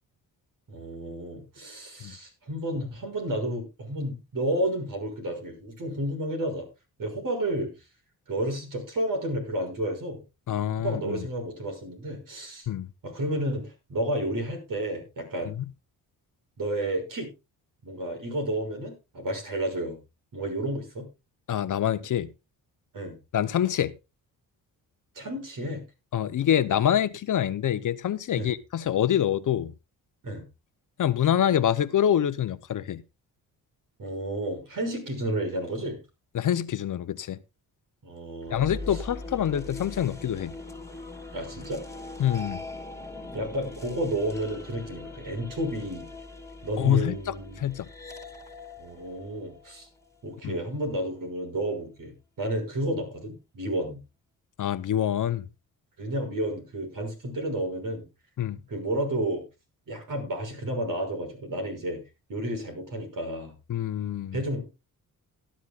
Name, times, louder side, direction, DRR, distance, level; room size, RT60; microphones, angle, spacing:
voice 1, 0.7-6.7 7.0-7.7 8.3-10.2 10.8-12.7 13.0-15.5 16.6-17.3 17.8-20.0 20.3-21.1 22.9-23.2 25.1-25.8 28.3-28.5 30.2-30.4 34.0-36.0 38.0-38.7 41.3-41.8 43.3-46.1 46.6-47.7 48.8-49.9 50.2-54.0 56.0-58.1 58.7-59.4 59.9-62.0 62.3-63.5 64.3-64.7, right 1 dB, 60° right, 6.4 m, -31 dB
voice 2, 10.5-11.3 12.7-12.9 15.4-15.6 21.5-22.3 23.3-23.9 26.1-29.7 31.0-33.0 36.3-37.4 38.5-40.5 42.2-42.6 46.8-47.9 50.4-50.5 54.6-55.5 58.4-58.6 63.7-64.4, left 10 dB, 55° left, 0.8 m, -26 dB
sound 1, 38.4-50.6, left 2 dB, 10° left, 2.5 m, -41 dB
18.0 x 11.5 x 2.4 m
cardioid pair, 85°, 37 cm